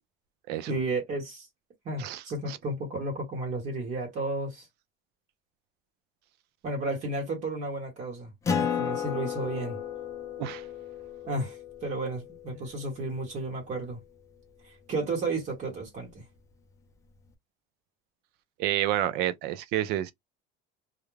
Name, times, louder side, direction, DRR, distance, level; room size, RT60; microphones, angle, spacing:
voice 1, 0.7-1.5 1.8-4.7 6.6-8.3 8.6-9.8 11.2-14.0 14.6-16.2, right 2 dB, 35° right, 1.0 m, -33 dB
Acoustic guitar, 8.4-13.4, left 7 dB, 15° left, 0.4 m, -34 dB
voice 2, 18.6-20.1, right 12 dB, 55° right, 0.4 m, -29 dB
2.4 x 2.1 x 3.1 m
cardioid pair, 165°, 20 cm